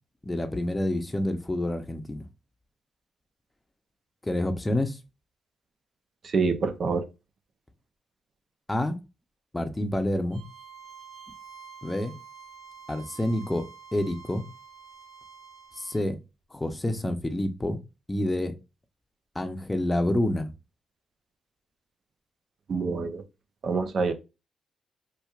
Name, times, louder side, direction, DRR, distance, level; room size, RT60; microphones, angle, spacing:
voice 1, 0.2-2.2 4.2-5.0 8.7-9.0 9.5-10.4 11.8-12.1 12.9-14.4 15.8-16.2 16.5-17.8 18.1-18.5 19.3-20.5, left 1 dB, 15° left, 0.7 m, -28 dB
voice 2, 6.2-7.1 22.7-23.2 23.6-24.1, right 4 dB, 55° right, 0.7 m, -26 dB
Bowed string instrument, 10.3-16.1, right 6 dB, 85° right, 1.9 m, -48 dB
4.4 x 2.5 x 2.4 m
cardioid pair, 70°, 0 cm